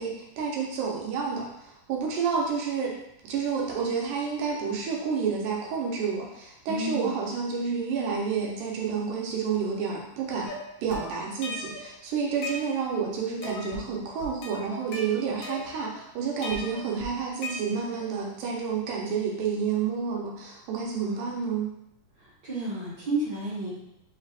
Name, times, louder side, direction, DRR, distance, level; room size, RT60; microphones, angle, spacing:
voice 1, 0.0-2.9 3.2-10.5 10.8-21.7, right 6 dB, 85° right, -1 dB, 2.4 m, -29 dB
voice 2, 6.7-7.1 21.0-21.3 22.2-23.7, right 2 dB, 45° right, -12 dB, 1.4 m, -32 dB
sound 1, 10.5-11.9 12.2-13.0 13.4-13.9 14.2-16.0 16.4-18.0, left 1 dB, 85° left, 1.3 m, -38 dB
5.2 x 3.4 x 2.4 m, 0.80 s
omnidirectional pair, 3.6 m